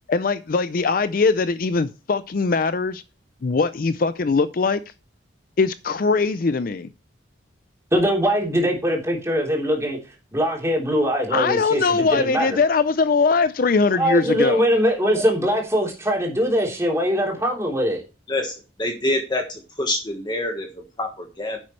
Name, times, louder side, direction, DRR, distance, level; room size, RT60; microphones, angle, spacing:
voice 1, 0.1-3.0 3.4-4.8 5.6-6.9 11.3-14.6, left 4 dB, 45° left, 0.4 m, -21 dB
voice 2, 7.9-12.6 14.0-18.0, equal, 15° right, 3.5 m, -22 dB
voice 3, 18.3-21.6, left 1 dB, 20° left, 1.3 m, -27 dB
10.5 x 8.4 x 3.2 m
head